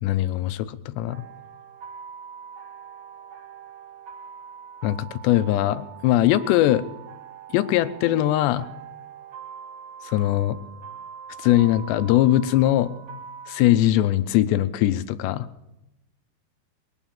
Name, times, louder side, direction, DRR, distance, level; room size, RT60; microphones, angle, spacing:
voice 1, 0.0-1.2 4.8-6.9 7.5-8.7 10.0-10.6 11.4-12.9 13.5-15.5, left 14 dB, 85° left, 13 dB, 2.8 m, -21 dB
sound 1, 1.1-13.6, right 7 dB, 75° right, 1.3 m, -43 dB
21.5 x 9.1 x 7.2 m, 0.91 s
omnidirectional pair, 4.9 m